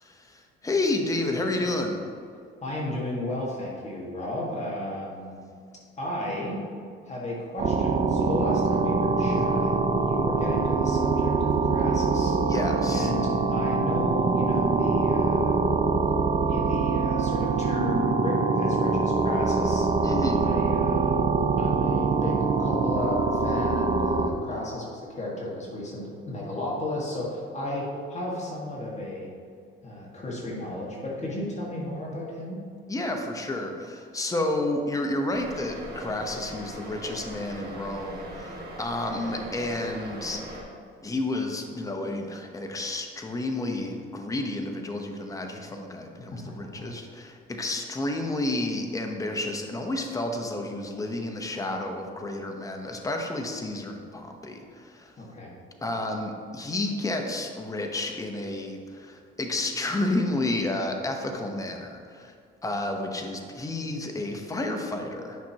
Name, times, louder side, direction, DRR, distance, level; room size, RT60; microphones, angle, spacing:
voice 1, 0.0-2.0 9.2-9.5 12.4-13.1 20.0-20.5 32.9-40.4 41.0-55.1 55.8-62.3 62.6-65.4, left 2 dB, 15° left, 3 dB, 0.8 m, -31 dB
voice 2, 2.6-5.4 6.0-6.6 7.0-12.4 12.9-15.6 16.5-19.9 20.3-29.3 29.8-32.6 55.2-55.5, left 1 dB, 35° left, -4 dB, 1.7 m, -33 dB
sound 1, 7.6-24.3, right 4 dB, 30° right, 0.5 m, -24 dB
sound 2, 35.3-40.6, right 1 dB, 50° right, 1.6 m, -40 dB
9.3 x 5.8 x 2.9 m, 2.2 s
cardioid pair, 105°, 21 cm